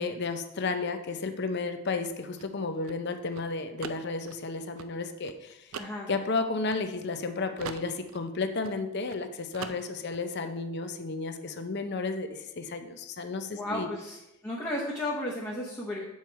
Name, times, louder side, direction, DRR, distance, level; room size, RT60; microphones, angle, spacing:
voice 1, 0.0-5.7 6.1-13.9, left 3 dB, 50° left, 7 dB, 0.6 m, -33 dB
sound 1, 2.0-7.3 7.6-9.2 9.5-10.2, right 6 dB, 70° right, 0.4 m, -44 dB
voice 2, 5.7-6.1 13.5-14.2 14.4-16.0, left 1 dB, 15° left, -6 dB, 0.9 m, -33 dB
7.1 x 4.5 x 4.6 m, 0.91 s
head